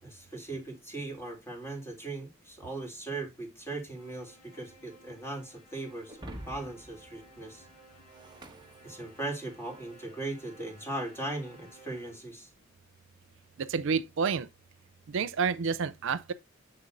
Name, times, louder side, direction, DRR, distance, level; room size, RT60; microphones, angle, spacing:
voice 1, 0.0-7.6 8.8-12.5, right 2 dB, 10° left, 2.9 m, -39 dB
sound 1, 3.9-12.5, right 1 dB, 40° left, 2.7 m, -57 dB
Shatter, 6.1-9.6, right 1 dB, 20° right, 1.2 m, -48 dB
voice 2, 13.6-14.5 15.1-16.3, right 5 dB, 65° right, 0.5 m, -29 dB
7.7 x 6.8 x 2.6 m
head